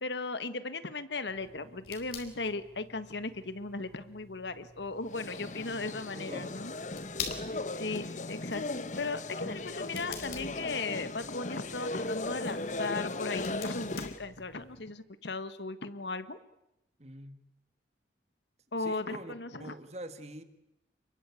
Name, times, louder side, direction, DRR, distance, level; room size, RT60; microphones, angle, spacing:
voice 1, 0.0-6.7 7.7-16.4 18.7-19.7, left 3 dB, 75° left, 12 dB, 1.5 m, -37 dB
sound 1, 1.3-14.8, left 6 dB, 60° left, 4.5 m, -48 dB
sound 2, 5.1-14.2, left 2 dB, 40° left, 1.0 m, -37 dB
voice 2, 5.5-6.6 17.0-17.4 18.8-19.3 19.6-20.4, right 1 dB, 35° right, 10 dB, 1.8 m, -45 dB
29.5 x 22.0 x 8.4 m, 0.88 s
head